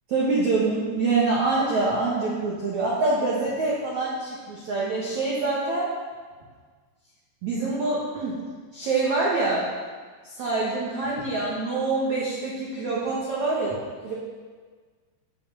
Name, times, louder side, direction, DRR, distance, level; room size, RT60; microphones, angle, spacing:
voice 1, 0.1-5.9 7.4-8.4 8.7-9.7 10.2-13.8 14.0-14.1, right 3 dB, 65° right, -6 dB, 1.8 m, -25 dB
8.6 x 7.8 x 6.7 m, 1.5 s
omnidirectional pair, 5.6 m